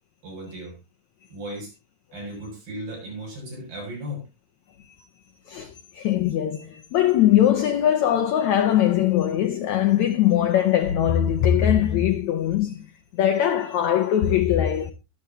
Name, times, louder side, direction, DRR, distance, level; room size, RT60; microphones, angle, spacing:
voice 1, 0.2-0.7 1.3-1.7 2.1-4.3, equal, 65° right, 9.1 m, -36 dB
voice 2, 5.5-12.8 13.1-14.9, left 11 dB, 75° left, 1.7 m, -21 dB
21.5 x 8.0 x 2.8 m
omnidirectional pair, 4.4 m